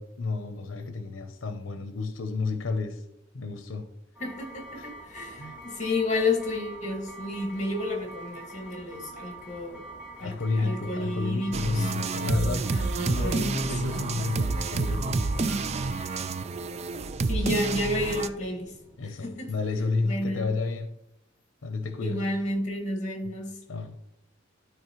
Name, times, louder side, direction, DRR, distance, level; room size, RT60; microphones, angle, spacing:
voice 1, 0.0-3.0 3.3-3.9 4.8-4.9 5.4-5.6 10.2-12.7 13.0-15.6 19.0-21.0 21.6-22.2 23.7-24.0, left 3 dB, 85° left, 0.7 m, -31 dB
voice 2, 4.2-9.9 10.2-11.9 12.5-13.4 17.3-18.8 19.0-19.5 20.0-20.5 22.0-23.6, left 2 dB, 40° left, 1.9 m, -31 dB
sound 1, 4.2-19.1, right 2 dB, 5° right, 2.6 m, -45 dB
sound 2, 11.5-18.3, right 3 dB, 35° right, 0.3 m, -29 dB
12.5 x 4.5 x 3.0 m
head